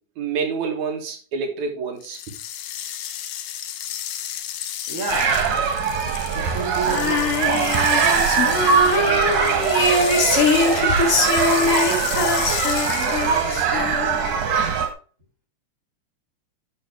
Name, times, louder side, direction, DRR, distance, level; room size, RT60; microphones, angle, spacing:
voice 1, 0.2-2.2, right 5 dB, 70° right, 2 dB, 2.9 m, -27 dB
sound 1, 2.0-13.6, left 11 dB, 70° left, 1.9 m, -33 dB
voice 2, 4.9-5.4 6.3-7.7 8.2-10.3 10.6-11.8 12.8-14.1, right 2 dB, 30° right, -1 dB, 2.3 m, -33 dB
sound 2, 5.1-14.9, right 6 dB, 90° right, 3.0 m, -21 dB
Female singing, 6.9-14.3, left 3 dB, 50° left, 2.4 m, -22 dB
12.0 x 5.4 x 3.5 m, 0.38 s
omnidirectional pair, 3.4 m